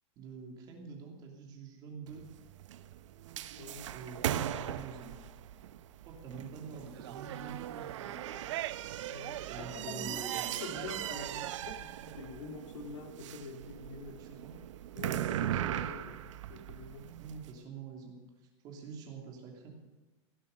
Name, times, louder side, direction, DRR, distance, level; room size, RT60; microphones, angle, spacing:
voice 1, 0.2-2.3 3.9-5.1 6.1-8.3 9.5-10.8 14.0-14.6 15.4-15.8 17.2-18.2 18.6-19.7, right 5 dB, 25° right, 1 dB, 2.9 m, -46 dB
sound 1, 2.1-17.5, right 11 dB, 90° right, 0.9 m, -39 dB
voice 2, 3.6-3.9 4.5-4.8 9.1-10.2 10.6-14.4 14.9-17.1, left 3 dB, 80° left, 5 dB, 2.2 m, -46 dB
sound 2, 6.7-11.7, right 15 dB, 60° right, 0.5 m, -44 dB
16.5 x 11.0 x 6.6 m, 1.2 s
supercardioid pair, 175°, 15 cm